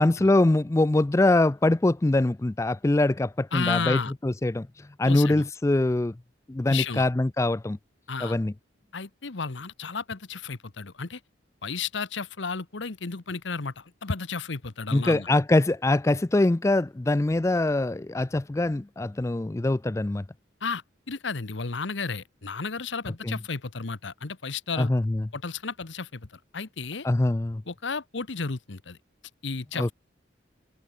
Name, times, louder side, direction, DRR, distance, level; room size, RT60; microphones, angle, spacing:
voice 1, 0.0-4.7 5.0-6.1 6.5-7.8 8.2-8.5 14.9-20.2 23.2-23.4 24.8-25.2 27.0-27.6 29.8-29.9, left 2 dB, 15° left, 0.4 m, -23 dB
voice 2, 3.5-4.1 5.0-5.4 6.7-7.1 8.1-8.4 8.9-11.2 11.6-15.3 20.6-20.8 21.1-24.9 25.3-26.3 26.5-27.1 27.7-29.0 29.4-29.9, left 4 dB, 75° left, 1.1 m, -33 dB
head